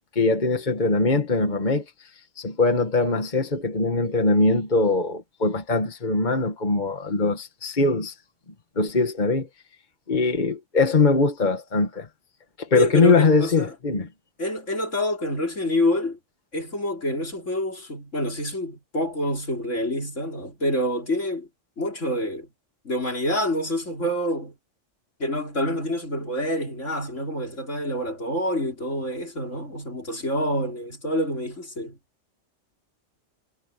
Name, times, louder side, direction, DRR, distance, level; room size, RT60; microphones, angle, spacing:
voice 1, 0.2-1.9 2.4-8.1 8.8-9.5 10.1-12.1 12.6-14.1, left 3 dB, 40° left, 1.8 m, -22 dB
voice 2, 12.7-13.7 14.4-16.2 16.5-21.5 21.8-22.5 22.9-24.6 25.2-32.0, left 1 dB, 75° left, 5.2 m, -27 dB
omnidirectional pair, 1.3 m